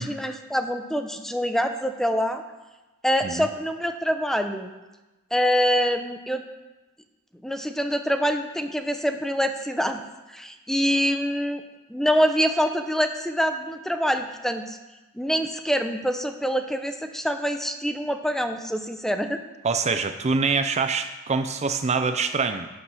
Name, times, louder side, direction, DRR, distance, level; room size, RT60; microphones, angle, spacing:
voice 1, 0.0-2.4 3.0-4.7 5.3-6.4 7.4-10.0 10.3-11.6 11.9-14.8 15.2-19.4, equal, ahead, 7 dB, 0.7 m, -25 dB
voice 2, 19.6-22.7, right 4 dB, 30° right, 9 dB, 0.5 m, -25 dB
11.0 x 7.7 x 6.4 m, 1.1 s
head